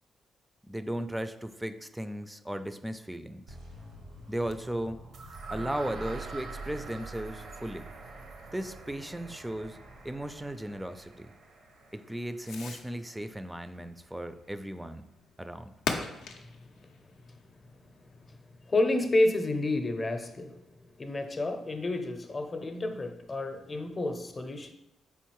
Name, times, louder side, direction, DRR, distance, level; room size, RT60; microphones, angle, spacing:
voice 1, 0.6-3.6 4.3-5.0 5.5-7.9 8.5-9.8 10.0-11.3 11.9-15.1 15.4-15.7, right 1 dB, 10° right, 11 dB, 0.3 m, -36 dB
sound 1, 3.5-10.3, equal, 85° right, 0.9 m, -51 dB
Fireworks, 3.8-18.4, left 5 dB, 80° left, 0.4 m, -45 dB
sound 2, 5.1-13.1, right 4 dB, 70° right, 0.6 m, -45 dB
voice 2, 18.7-20.5 21.0-24.7, left 2 dB, 40° left, 6 dB, 0.6 m, -29 dB
4.1 x 3.6 x 3.0 m, 0.87 s
hypercardioid pair, 45°, 0 cm